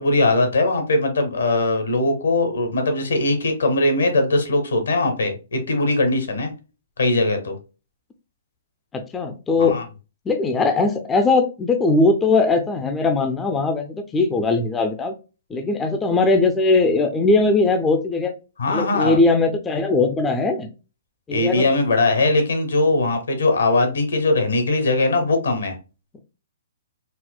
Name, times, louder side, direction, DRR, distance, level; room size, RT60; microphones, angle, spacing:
voice 1, 0.0-6.5 7.0-7.6 9.6-9.8 18.6-19.2 21.3-25.8, left 2 dB, 85° left, 6 dB, 1.0 m, -20 dB
voice 2, 8.9-9.8 10.3-15.1 15.5-18.3 18.7-20.7 21.3-21.7, left 3 dB, 10° left, 6 dB, 0.3 m, -20 dB
4.2 x 2.1 x 2.2 m, 0.32 s
hypercardioid pair, 160°, 0 cm